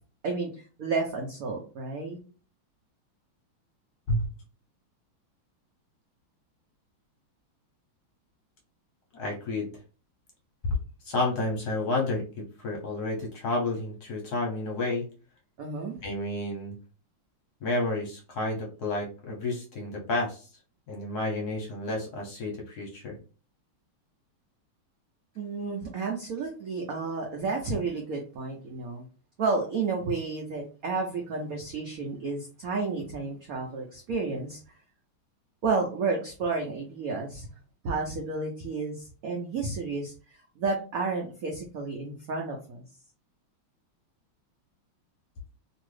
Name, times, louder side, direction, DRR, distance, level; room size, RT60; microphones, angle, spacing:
voice 1, 0.2-2.2 15.6-16.0 25.4-29.1 29.4-34.6 35.6-37.5 37.8-42.8, right 4 dB, 85° right, 1 dB, 0.7 m, -31 dB
voice 2, 9.1-9.7 10.6-10.8 11.0-15.1 16.0-16.7 17.6-20.5 20.9-23.1, left 2 dB, 65° left, 0 dB, 1.1 m, -30 dB
3.0 x 2.7 x 3.1 m, 0.36 s
omnidirectional pair, 2.3 m